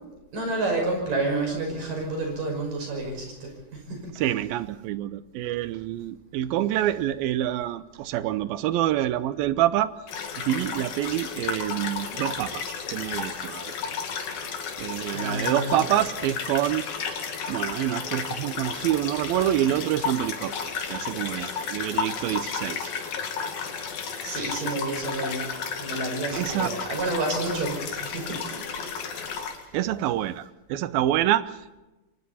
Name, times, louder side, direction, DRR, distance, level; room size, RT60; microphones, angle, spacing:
voice 1, 0.3-4.1 15.1-16.0 24.2-25.4 25.8-28.7, right 2 dB, 65° right, 1 dB, 7.5 m, -30 dB
voice 2, 4.1-9.9 10.4-13.8 14.8-16.9 17.5-22.9 26.3-26.8 29.7-31.6, right 12 dB, 90° right, 15 dB, 2.7 m, -27 dB
sound 1, 10.1-29.6, left 6 dB, 75° left, 4.0 m, -33 dB
29.0 x 25.0 x 4.2 m, 1.0 s
omnidirectional pair, 4.1 m